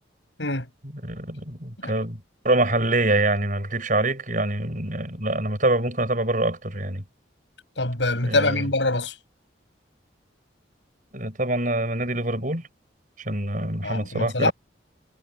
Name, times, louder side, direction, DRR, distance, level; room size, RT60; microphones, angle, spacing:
voice 1, 0.4-0.7 1.8-1.9 7.8-9.1 13.8-14.5, left 2 dB, 75° left, 7.4 m, -24 dB
voice 2, 1.0-7.0 8.2-8.6 11.1-12.6 13.2-14.5, right 2 dB, 45° right, 6.4 m, -25 dB
head